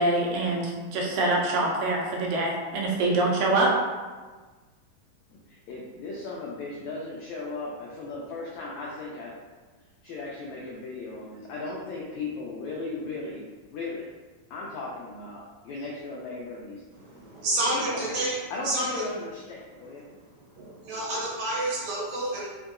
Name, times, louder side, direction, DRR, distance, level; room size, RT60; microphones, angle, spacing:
voice 1, 0.0-3.7, right 2 dB, 85° right, -1 dB, 2.4 m, -25 dB
voice 2, 5.3-9.3 10.0-14.1 14.5-16.8 17.7-18.2 18.5-20.0, left 3 dB, 90° left, -4 dB, 1.6 m, -37 dB
voice 3, 17.0-18.3 18.6-19.0 20.5-22.5, right 1 dB, 70° right, -6 dB, 2.0 m, -29 dB
5.5 x 2.6 x 2.5 m, 1.3 s
omnidirectional pair, 3.8 m